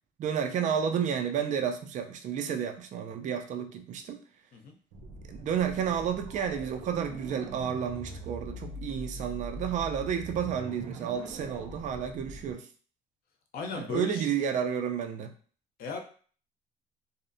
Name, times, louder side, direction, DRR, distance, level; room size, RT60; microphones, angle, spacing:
voice 1, 0.2-4.2 5.3-12.7 13.7-15.3, right 8 dB, 45° right, 5 dB, 0.4 m, -31 dB
sound 1, 4.9-12.5, right 2 dB, 80° right, 0.7 m, -42 dB
voice 2, 13.5-14.2 15.8-16.0, left 4 dB, 60° left, 2 dB, 0.6 m, -35 dB
2.6 x 2.0 x 2.6 m, 0.42 s
cardioid pair, 110°, 17 cm